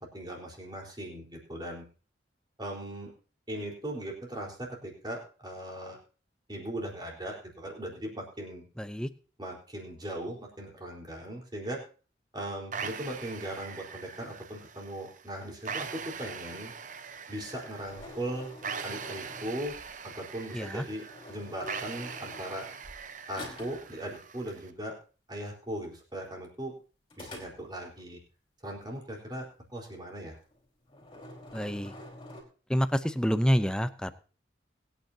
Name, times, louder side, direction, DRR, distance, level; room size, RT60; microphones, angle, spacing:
voice 1, 0.0-1.8 2.6-3.1 3.5-6.0 6.5-8.7 9.4-11.8 12.3-16.7 17.3-18.5 18.8-19.8 20.0-22.7 23.3-25.0 25.3-26.8 27.2-28.2 28.6-30.4, right 1 dB, 25° right, -1 dB, 4.2 m, -39 dB
voice 2, 8.8-9.1 20.5-20.8 31.5-31.9 32.7-34.1, equal, 5° left, 11 dB, 0.7 m, -27 dB
sound 1, 12.7-24.7, right 6 dB, 45° right, 0.9 m, -42 dB
sound 2, 17.1-19.9 20.9-23.0 23.3-23.9 27.1-28.0 30.3-30.6 30.9-32.4, left 1 dB, 25° left, 4.5 m, -47 dB
22.0 x 9.3 x 2.8 m, 0.37 s
head